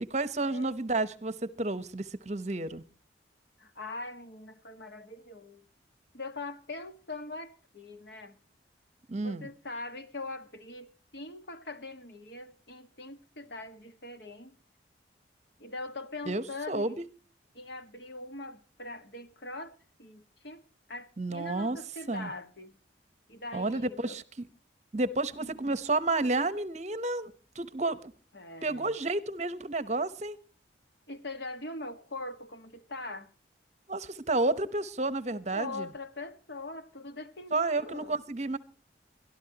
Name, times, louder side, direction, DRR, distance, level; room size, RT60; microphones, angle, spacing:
voice 1, 0.0-2.8 9.1-9.5 16.3-17.0 21.2-21.8 22.1-22.3 23.5-24.5 24.9-28.1 28.6-30.4 33.9-35.9 37.5-38.6, right 2 dB, 35° right, 0.9 m, -31 dB
voice 2, 3.6-5.6 6.1-8.4 9.2-14.6 15.6-17.0 17.5-22.8 23.3-24.2 25.4-25.8 28.3-29.0 31.1-33.3 35.5-38.2, left 2 dB, 65° left, 1.6 m, -42 dB
23.0 x 13.0 x 2.9 m
head